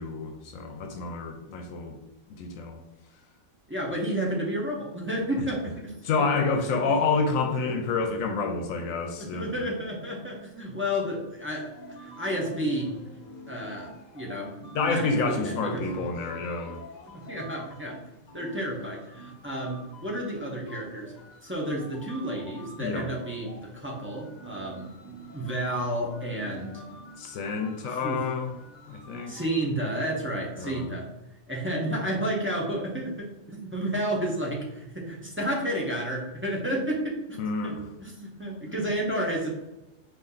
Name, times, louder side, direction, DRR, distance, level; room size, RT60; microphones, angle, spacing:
voice 1, 0.0-2.0 2.3-2.8 5.4-5.5 6.0-9.5 14.7-16.8 22.8-23.1 27.2-28.5 28.9-29.3 30.6-30.9 37.4-37.8, left 4 dB, 80° left, 4 dB, 1.0 m, -28 dB
voice 2, 3.7-6.3 6.7-6.9 9.2-13.0 13.5-16.1 17.1-18.0 18.3-21.1 21.4-26.8 27.9-28.3 29.3-31.1 31.5-39.5, right 1 dB, 10° right, -3 dB, 0.6 m, -31 dB
sound 1, 11.7-29.6, left 1 dB, 45° left, 0.6 m, -47 dB
4.2 x 2.7 x 3.8 m, 0.96 s
omnidirectional pair, 1.4 m